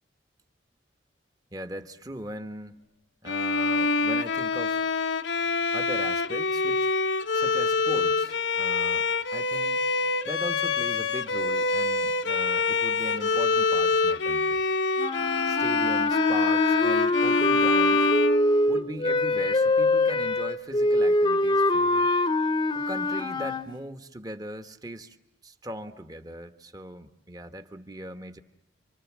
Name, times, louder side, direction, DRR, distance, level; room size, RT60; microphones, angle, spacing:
voice 1, 1.5-2.9 3.2-4.8 5.7-6.9 7.3-9.8 10.2-14.6 15.4-18.1 18.7-22.1 22.7-25.2 25.4-28.4, right 1 dB, 20° right, 9 dB, 1.4 m, -39 dB
Bowed string instrument, 3.3-19.1, left 3 dB, 85° left, 1.0 m, -26 dB
sound 1, 15.0-23.7, left 2 dB, 25° left, 1.0 m, -24 dB
30.0 x 25.5 x 7.5 m, 0.87 s
head